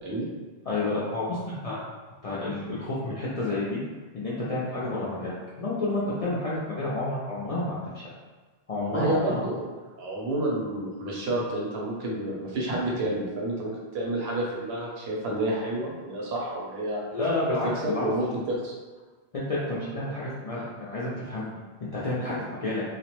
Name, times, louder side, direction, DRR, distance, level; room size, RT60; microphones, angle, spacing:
voice 1, 0.7-1.8 2.2-3.8 4.1-8.1 8.7-9.4 17.1-18.0 19.3-21.5 21.9-22.8, left 2 dB, 55° left, -9 dB, 0.4 m, -30 dB
voice 2, 8.9-9.6 10.0-17.0 17.8-18.7, right 1 dB, 75° right, -3 dB, 0.9 m, -29 dB
2.3 x 2.0 x 2.9 m, 1.3 s
omnidirectional pair, 1.1 m